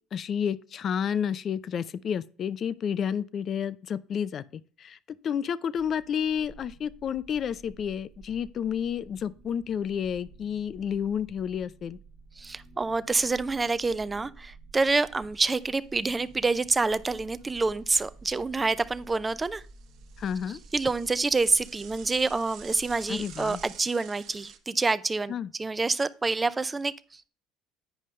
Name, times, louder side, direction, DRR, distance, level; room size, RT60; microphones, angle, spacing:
voice 1, 0.1-12.0 20.2-20.6 23.1-23.6 25.3-25.5, left 8 dB, 45° left, 0.5 m, -30 dB
sound 1, 5.8-23.7, right 3 dB, 40° right, 1.1 m, -51 dB
voice 2, 12.4-19.6 20.7-25.3 25.6-27.3, right 3 dB, 20° right, 0.5 m, -27 dB
Bicycle / Mechanisms, 15.3-15.7 16.0-16.1 16.4-16.5 17.1-18.3 18.7-24.6, right 9 dB, 65° right, 1.1 m, -50 dB
9.3 x 5.3 x 3.2 m
supercardioid pair, 100°, 0 cm